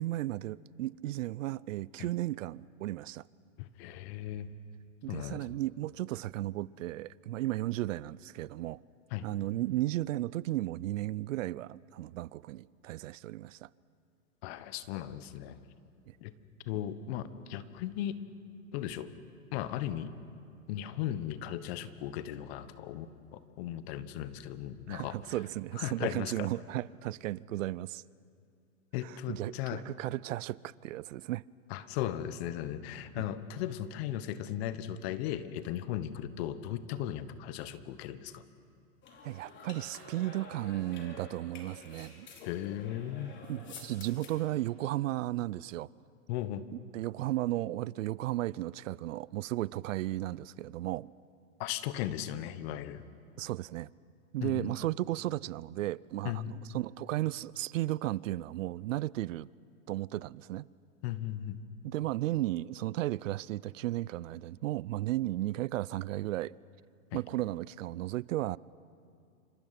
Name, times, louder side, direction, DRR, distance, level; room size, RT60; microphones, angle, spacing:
voice 1, 0.0-3.2 5.0-8.8 9.2-13.7 16.1-16.2 24.9-28.0 29.0-31.4 33.2-33.3 39.2-42.3 43.5-45.9 46.9-51.1 53.4-53.9 54.3-59.5 59.9-60.7 61.8-66.5 67.1-68.6, right 15 dB, 70° right, 0.6 m, -34 dB
voice 2, 3.6-4.5 5.1-5.4 9.1-9.3 14.4-15.6 16.2-16.3 16.7-18.1 18.7-19.1 19.5-20.1 20.7-25.2 25.8-26.5 28.9-29.8 31.7-38.4 42.4-43.3 46.3-46.7 51.6-53.0 54.4-54.7 56.2-56.6 61.0-61.6 67.1-67.2, left 12 dB, 50° left, 1.4 m, -37 dB
sound 1, 39.0-44.5, left 4 dB, 25° left, 4.5 m, -50 dB
27.5 x 26.0 x 6.0 m
hypercardioid pair, 120°, 41 cm